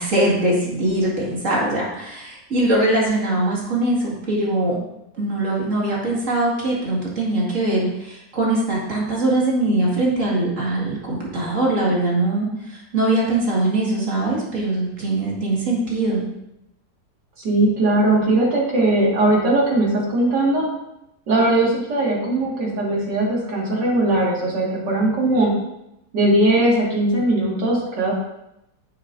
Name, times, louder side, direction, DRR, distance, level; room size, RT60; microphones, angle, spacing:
voice 1, 0.0-4.8 5.1-16.2, right 2 dB, 45° right, -4 dB, 2.5 m, -22 dB
voice 2, 17.4-20.6 21.3-25.5 26.1-28.1, right 2 dB, 90° right, -3 dB, 2.6 m, -19 dB
9.9 x 7.3 x 2.7 m, 0.85 s
omnidirectional pair, 1.8 m